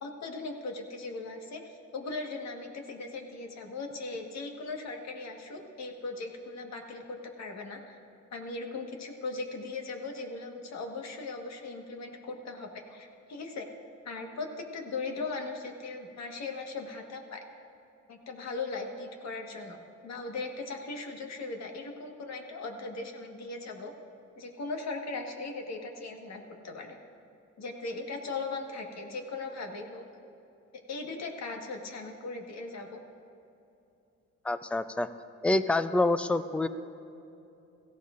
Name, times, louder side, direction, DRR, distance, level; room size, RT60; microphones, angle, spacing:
voice 1, 0.0-8.0 8.3-13.7 14.0-17.4 18.1-23.9 24.4-27.0 27.6-30.0 30.9-33.0, left 3 dB, 60° left, 2 dB, 1.6 m, -38 dB
voice 2, 34.4-35.1 35.4-36.7, left 2 dB, 5° left, 11 dB, 0.4 m, -26 dB
17.0 x 14.5 x 2.5 m, 2.8 s
cardioid pair, 90°, 30 cm